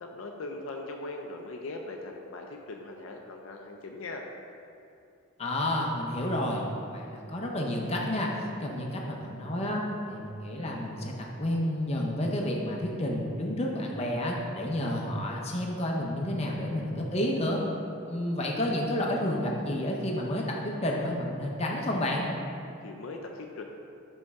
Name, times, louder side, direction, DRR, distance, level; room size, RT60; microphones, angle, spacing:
voice 1, 0.0-4.3 22.8-23.6, left 2 dB, 70° left, 2 dB, 0.4 m, -40 dB
voice 2, 5.4-6.6 6.9-8.3 8.6-9.8 10.1-17.6 18.1-22.3, left 1 dB, 30° left, -1 dB, 0.7 m, -30 dB
5.4 x 5.2 x 3.5 m, 2.6 s
head